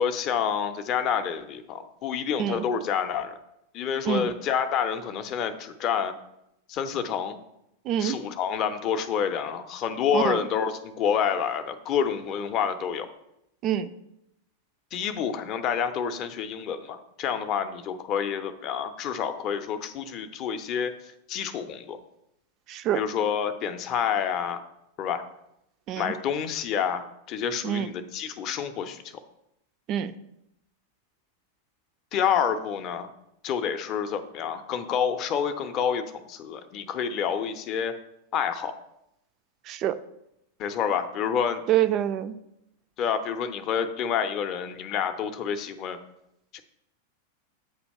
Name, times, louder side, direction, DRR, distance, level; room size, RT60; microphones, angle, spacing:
voice 1, 0.0-3.4 3.7-6.1 6.7-7.4 8.0-13.1 14.9-20.9 21.3-22.0 22.9-24.6 25.0-25.2 26.0-29.0 32.1-33.1 33.4-37.9 38.3-38.7 40.6-41.6 43.0-46.0 46.5-46.6, left 7 dB, 35° left, 9 dB, 0.5 m, -28 dB
voice 2, 7.8-8.2 10.1-10.4 13.6-13.9 22.7-23.0 25.9-26.1 27.6-27.9 29.9-30.1 39.7-40.0 41.7-42.3, right 10 dB, 35° right, 11 dB, 0.3 m, -26 dB
8.1 x 2.8 x 5.3 m, 0.81 s
figure-of-eight pair, 90°, 0 cm